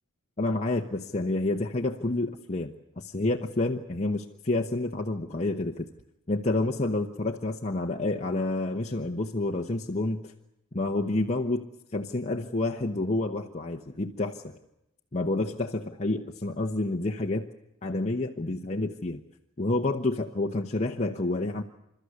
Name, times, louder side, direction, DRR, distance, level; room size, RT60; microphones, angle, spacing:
voice 1, 0.4-5.9 6.3-10.3 10.7-11.7 11.9-14.4 15.1-17.5 17.8-19.2 19.6-21.6, left 2 dB, 30° left, 1 dB, 1.0 m, -29 dB
28.5 x 13.0 x 9.6 m, 0.87 s
head